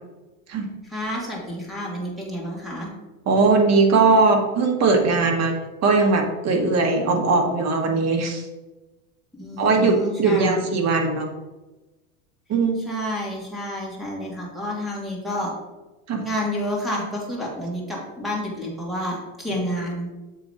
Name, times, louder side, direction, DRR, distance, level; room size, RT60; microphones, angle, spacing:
voice 1, 0.8-2.9 9.4-10.7 12.9-15.5 16.2-20.1, equal, ahead, -4 dB, 2.3 m, -29 dB
voice 2, 3.3-5.5 5.8-8.4 9.6-11.3 12.5-12.8 16.1-16.2 19.5-19.7, right 3 dB, 35° right, 3 dB, 1.5 m, -19 dB
7.3 x 3.8 x 5.1 m, 1.1 s
supercardioid pair, 115°, 43 cm